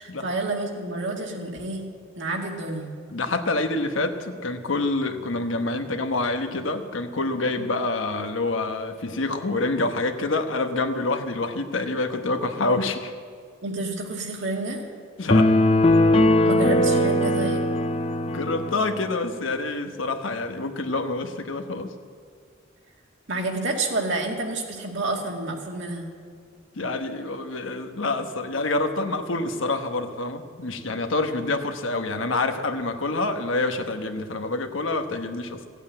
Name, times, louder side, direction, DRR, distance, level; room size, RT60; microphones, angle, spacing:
voice 1, 0.0-1.8 2.2-2.9 7.6-7.7 13.6-14.8 16.4-17.6 23.3-26.1, right 2 dB, 65° right, 1 dB, 2.1 m, -29 dB
voice 2, 3.1-13.1 15.2-15.5 18.3-21.9 26.8-35.6, left 2 dB, 85° left, 6 dB, 1.1 m, -27 dB
sound 1, 15.3-18.9, left 1 dB, 30° left, 0.6 m, -19 dB
16.0 x 8.2 x 8.8 m, 2.1 s
head